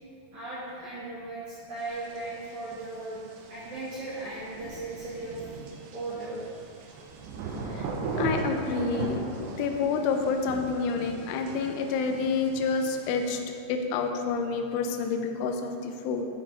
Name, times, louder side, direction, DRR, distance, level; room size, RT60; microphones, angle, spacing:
voice 1, 0.3-3.2 3.5-7.7, right 2 dB, 65° right, -9 dB, 1.9 m, -38 dB
sound 1, 1.8-13.4, right 3 dB, 80° right, 2.7 m, -38 dB
voice 2, 8.2-13.4 13.7-16.3, left 5 dB, 85° left, 4 dB, 3.0 m, -28 dB
11.5 x 6.0 x 3.2 m, 2.3 s
omnidirectional pair, 5.5 m